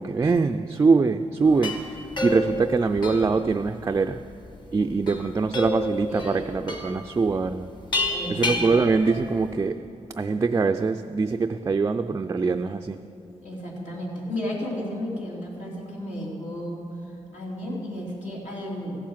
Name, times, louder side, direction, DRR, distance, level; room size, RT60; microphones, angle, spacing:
voice 1, 0.0-2.0 2.2-4.2 4.7-7.7 8.3-9.8 10.2-13.0, right 4 dB, 25° right, 0.3 m, -23 dB
sound 1, 1.4-9.5, left 2 dB, 40° left, 1.3 m, -31 dB
voice 2, 6.0-6.5 8.1-8.6 13.4-16.8 17.3-19.0, left 1 dB, 75° left, 3.2 m, -33 dB
15.0 x 7.5 x 7.3 m
wide cardioid pair, 115°, 12 cm